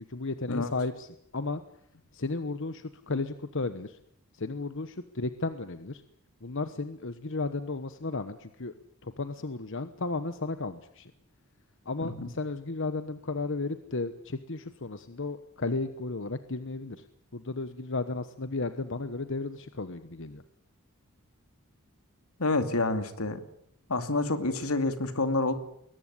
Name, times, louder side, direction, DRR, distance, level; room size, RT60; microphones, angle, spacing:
voice 1, 0.0-1.6 2.1-4.0 4.3-6.0 6.4-8.7 9.0-11.1 11.8-17.0 17.3-20.4, left 3 dB, 60° left, 11 dB, 1.1 m, -34 dB
voice 2, 22.4-23.4 23.9-25.5, left 2 dB, 80° left, 9 dB, 2.6 m, -28 dB
22.0 x 19.0 x 9.9 m, 0.71 s
head